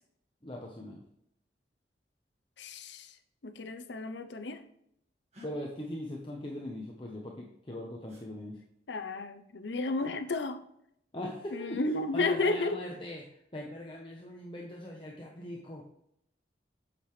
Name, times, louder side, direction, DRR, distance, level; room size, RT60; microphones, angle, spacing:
voice 1, 0.4-1.0 5.4-8.6 11.1-13.2 13.5-15.8, left 1 dB, 25° left, -1 dB, 1.0 m, -40 dB
voice 2, 2.6-3.1 3.4-4.6 8.9-10.6 11.5-12.8, left 3 dB, 75° left, 8 dB, 0.7 m, -32 dB
sound 1, 5.3-5.5 8.1-8.3 10.0-10.2 12.0-12.4, left 1 dB, 35° right, 1.9 m, -55 dB
8.8 x 6.8 x 3.2 m, 0.73 s
head